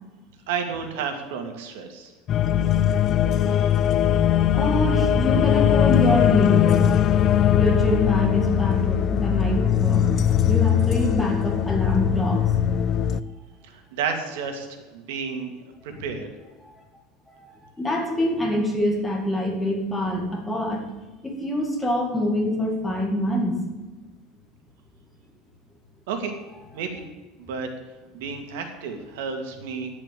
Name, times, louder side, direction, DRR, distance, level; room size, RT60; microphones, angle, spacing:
voice 1, 0.5-2.1 13.7-15.5 15.8-16.3 26.1-26.3 26.7-27.0 27.4-27.7 28.1-29.9, right 6 dB, 80° right, 5 dB, 2.2 m, -31 dB
sound 1, 2.3-13.2, left 9 dB, 30° left, 0.4 m, -20 dB
voice 2, 3.4-3.8 4.5-7.0 7.5-10.1 10.5-12.5 15.9-16.0 16.6-16.7 17.3-20.8 21.2-23.6, equal, 5° left, 0 dB, 2.0 m, -25 dB
10.0 x 8.8 x 8.4 m, 1.2 s
cardioid pair, 175°, 0 cm